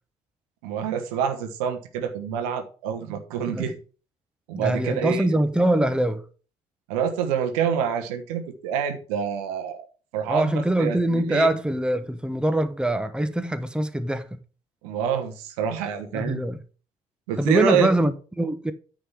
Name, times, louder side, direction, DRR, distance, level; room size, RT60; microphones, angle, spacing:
voice 1, 0.6-3.7 4.5-5.4 6.9-9.9 10.1-11.5 14.8-16.4 17.3-17.9, right 7 dB, 75° right, 1.3 m, -27 dB
voice 2, 4.5-6.2 10.3-14.3 16.1-16.6 17.4-18.7, right 1 dB, 5° right, 1.0 m, -23 dB
9.6 x 3.9 x 7.2 m
figure-of-eight pair, 45°, 19 cm